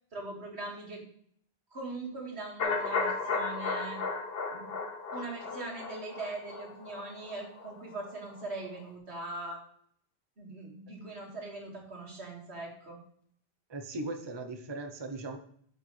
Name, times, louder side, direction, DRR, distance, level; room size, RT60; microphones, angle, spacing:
voice 1, 0.1-1.0 1.7-4.0 4.5-4.7 5.1-9.6 10.4-13.0, right 2 dB, 80° right, 0 dB, 2.4 m, -41 dB
sound 1, 2.6-8.5 8.8-8.9, left 4 dB, 65° left, 1.2 m, -35 dB
voice 2, 13.7-15.4, right 2 dB, 25° right, 5 dB, 0.8 m, -38 dB
8.9 x 6.6 x 3.3 m, 0.62 s
omnidirectional pair, 1.1 m